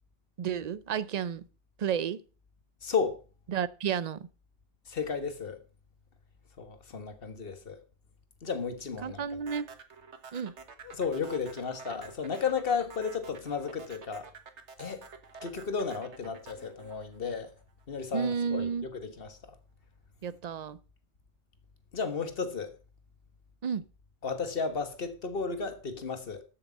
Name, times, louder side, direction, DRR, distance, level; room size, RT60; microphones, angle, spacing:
voice 1, 0.4-1.4 1.8-2.2 3.5-4.3 9.0-9.7 10.3-10.5 18.1-18.9 20.2-20.8 23.6-23.8, right 7 dB, 45° right, 0.6 m, -31 dB
voice 2, 2.8-3.2 4.9-5.6 6.6-7.8 8.4-9.2 10.8-14.3 14.8-15.1 15.4-17.5 17.9-19.5 21.9-22.7 24.2-26.4, left 5 dB, 55° left, 1.7 m, -33 dB
sound 1, 9.5-17.8, right 5 dB, 85° right, 1.7 m, -49 dB
13.5 x 6.9 x 5.3 m
omnidirectional pair, 1.1 m